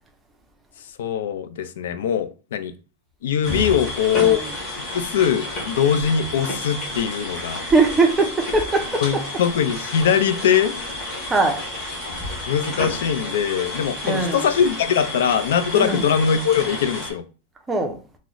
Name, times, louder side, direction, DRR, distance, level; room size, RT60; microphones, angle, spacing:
voice 1, 0.8-2.7 3.2-4.4 4.8-7.6 9.0-10.8 12.5-17.2, left 8 dB, 85° left, 0.4 m, -21 dB
sound 1, 3.4-17.1, left 1 dB, 25° left, 1.1 m, -31 dB
voice 2, 7.6-9.0 11.3-11.6 14.0-14.5 15.7-16.1 17.7-18.0, right 3 dB, 10° right, 0.4 m, -21 dB
2.9 x 2.0 x 3.7 m
supercardioid pair, 170°, 0 cm